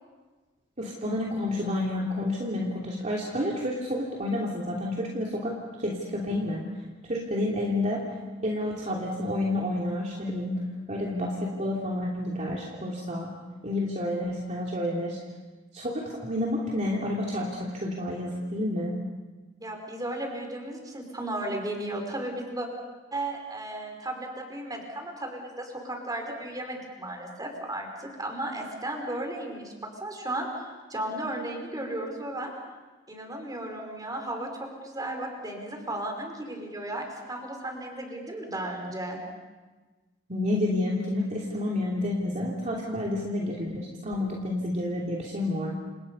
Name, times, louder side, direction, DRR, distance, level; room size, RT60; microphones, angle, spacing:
voice 1, 0.8-5.5 5.8-6.6 7.1-8.0 8.4-10.5 10.9-13.3 13.6-15.2 15.7-19.0 40.3-45.7, left 1 dB, 40° right, -2 dB, 3.0 m, -29 dB
voice 2, 19.6-22.7 23.1-29.7 30.0-32.5 33.1-39.2, right 1 dB, 20° right, 2 dB, 5.2 m, -35 dB
30.0 x 27.5 x 5.5 m, 1.3 s
head